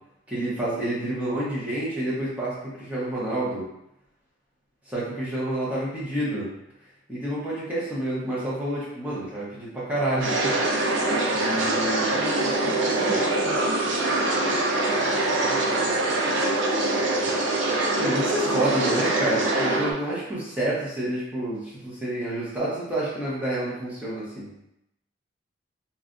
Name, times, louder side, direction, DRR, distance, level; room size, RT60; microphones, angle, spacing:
voice 1, 0.3-3.7 4.9-6.5 7.1-10.5 11.3-12.1 18.0-24.5, right 1 dB, 10° right, -9 dB, 1.0 m, -28 dB
sound 1, 10.2-19.9, right 2 dB, 80° right, 0.5 m, -24 dB
voice 2, 12.1-15.9 18.4-18.5, left 1 dB, 25° left, -4 dB, 0.3 m, -40 dB
3.2 x 2.4 x 2.5 m, 0.82 s
head